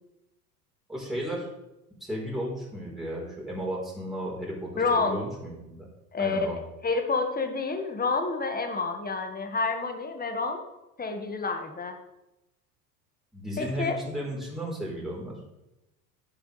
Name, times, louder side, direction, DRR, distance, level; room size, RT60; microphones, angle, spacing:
voice 1, 0.9-1.5 2.0-5.9 6.2-6.6 13.3-15.3, equal, ahead, -5 dB, 4.3 m, -34 dB
voice 2, 4.8-5.2 6.1-10.6 11.0-12.0 13.6-14.0, left 4 dB, 20° left, 5 dB, 1.8 m, -29 dB
11.0 x 10.5 x 3.4 m, 0.95 s
hypercardioid pair, 80°, 48 cm